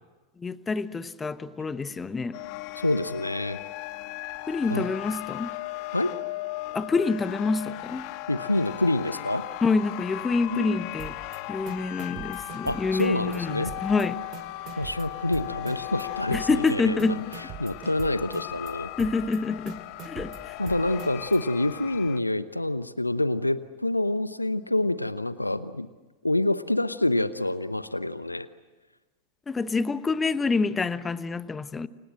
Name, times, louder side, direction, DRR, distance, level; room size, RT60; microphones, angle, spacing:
voice 1, 0.4-2.4 4.5-5.5 6.7-8.1 9.6-11.1 11.5-14.2 16.3-17.4 19.0-20.6 29.5-31.9, left 4 dB, 15° left, 1.1 m, -27 dB
sound 1, 2.3-22.2, left 17 dB, 45° left, 1.2 m, -37 dB
voice 2, 2.8-3.6 4.7-4.8 5.9-6.1 8.3-9.4 10.5-10.8 12.6-13.7 14.8-17.1 17.6-18.9 20.6-25.9 26.2-28.5, left 1 dB, 85° left, 0.9 m, -27 dB
sound 2, 11.0-11.4 11.7-13.4 13.7-14.0 14.3-16.0 16.3-16.7 17.0-18.7 19.0-19.4 19.7-21.4, right 10 dB, 40° right, 2.4 m, -42 dB
29.5 x 25.5 x 7.6 m
figure-of-eight pair, 90°, 0 cm